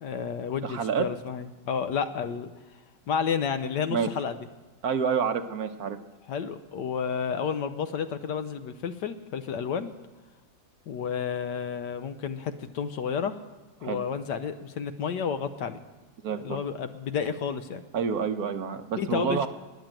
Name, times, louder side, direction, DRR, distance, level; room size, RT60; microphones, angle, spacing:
voice 1, 0.0-2.5 3.1-4.3 6.3-9.9 10.9-13.4 13.8-15.8 16.3-17.8 19.0-19.5, left 7 dB, 65° left, 10 dB, 1.3 m, -31 dB
voice 2, 0.6-1.1 3.9-4.1 4.8-6.0 13.8-14.0 16.2-16.6 17.9-19.5, right 6 dB, 60° right, 8 dB, 1.1 m, -28 dB
20.0 x 7.4 x 9.0 m, 1.1 s
omnidirectional pair, 2.1 m